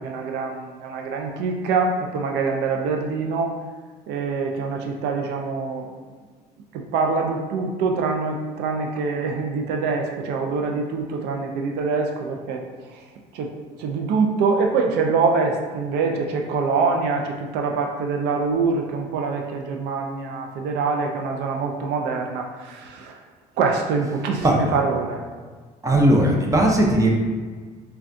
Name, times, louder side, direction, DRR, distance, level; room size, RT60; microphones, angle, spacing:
voice 1, 0.0-3.5 4.1-5.9 6.7-12.6 12.9-13.0 13.3-23.2 23.6-25.2, right 4 dB, 80° right, 2 dB, 0.4 m, -24 dB
voice 2, 24.4-24.8 25.8-27.1, right 1 dB, 20° right, 0 dB, 0.5 m, -18 dB
3.4 x 2.2 x 2.5 m, 1.5 s
cardioid pair, 110°, 17 cm